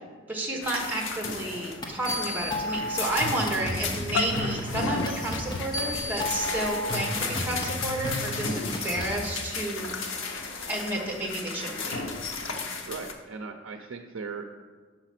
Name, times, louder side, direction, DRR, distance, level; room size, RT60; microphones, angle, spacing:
voice 1, 0.3-10.1 10.7-12.1, right 1 dB, 10° right, 0 dB, 1.1 m, -31 dB
sound 1, 0.6-13.1, left 4 dB, 85° left, 0.8 m, -35 dB
sound 2, 1.8-9.2, equal, 20° left, 0.7 m, -33 dB
sound 3, 4.0-6.5, left 5 dB, 65° left, 0.4 m, -33 dB
voice 2, 12.9-14.6, right 4 dB, 90° right, 4 dB, 0.5 m, -38 dB
6.2 x 4.9 x 5.8 m, 1.5 s
head